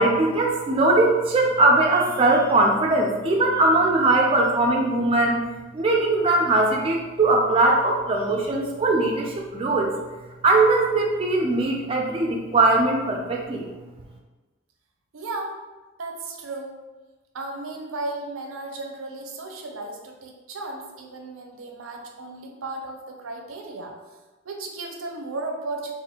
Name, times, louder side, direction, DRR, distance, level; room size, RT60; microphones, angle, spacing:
voice 1, 0.0-5.4 5.7-9.9 10.4-13.7, right 2 dB, 25° right, 0 dB, 0.3 m, -20 dB
voice 2, 15.1-15.6 16.0-16.8 17.3-23.9 24.4-25.9, right 2 dB, 75° right, 2 dB, 0.6 m, -35 dB
4.1 x 2.5 x 2.8 m, 1.2 s
head